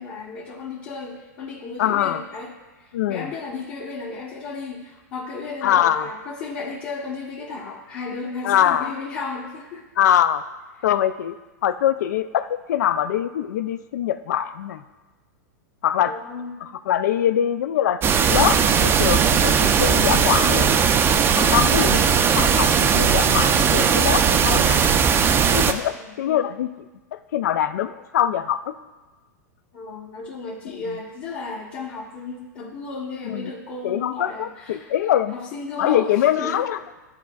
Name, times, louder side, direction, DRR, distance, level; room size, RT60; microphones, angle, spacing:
voice 1, 0.0-9.9 10.8-10.9 16.0-16.6 25.9-26.5 29.7-34.9 35.3-36.7, left 4 dB, 50° left, -5 dB, 1.1 m, -34 dB
voice 2, 1.8-2.2 2.9-3.3 5.6-6.1 8.4-8.9 10.0-10.4 10.8-11.3 11.6-14.8 15.8-16.2 16.6-18.0 18.3-20.8 21.4-24.8 25.5-26.7 27.3-28.7 33.3-33.5 33.8-35.3 35.8-36.8, left 10 dB, 70° left, 13 dB, 0.4 m, -23 dB
sound 1, 18.0-25.7, right 7 dB, 25° right, 0.4 m, -18 dB
12.0 x 4.1 x 2.3 m, 1.2 s
hypercardioid pair, 110°, 9 cm